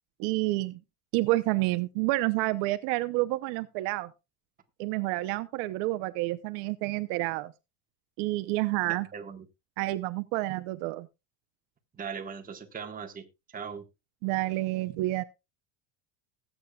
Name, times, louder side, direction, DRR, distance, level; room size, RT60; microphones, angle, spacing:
voice 1, 0.2-0.8 1.1-4.1 4.8-7.5 8.2-9.1 9.8-11.1 14.2-15.2, right 19 dB, 65° right, 0.9 m, -29 dB
voice 2, 8.8-9.5 11.9-13.9, right 6 dB, 15° right, 1.5 m, -40 dB
20.0 x 8.6 x 2.3 m
cardioid pair, 160°, 50 cm